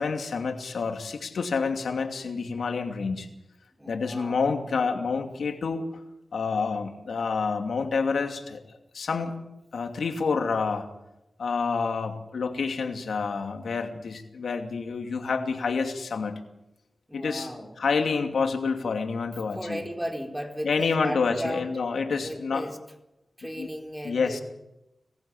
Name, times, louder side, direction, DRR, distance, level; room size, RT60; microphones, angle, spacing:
voice 1, 0.0-3.3 3.9-5.8 6.3-8.6 8.9-9.4 9.7-10.9 11.4-16.4 17.1-17.5 17.8-19.8 20.6-22.7 23.6-23.7 24.0-24.4, left 5 dB, 80° left, 5 dB, 2.6 m, -28 dB
voice 2, 3.8-4.4 17.1-17.8 19.6-21.8 22.2-22.8 23.4-24.4, equal, 10° right, 3 dB, 4.3 m, -35 dB
21.5 x 15.5 x 8.7 m, 0.92 s
cardioid pair, 50°, 0 cm